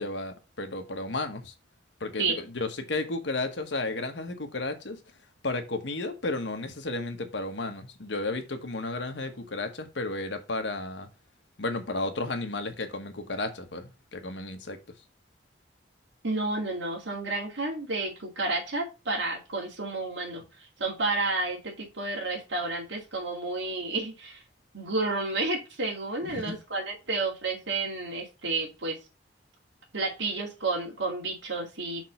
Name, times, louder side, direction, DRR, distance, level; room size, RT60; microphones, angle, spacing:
voice 1, 0.0-1.5 2.0-5.0 5.4-11.1 11.6-14.8 26.3-26.6, left 2 dB, 75° left, 1.3 m, -33 dB
voice 2, 16.2-24.4 24.7-29.0 29.9-32.1, right 3 dB, 80° right, 2.5 m, -31 dB
6.1 x 3.7 x 5.6 m
head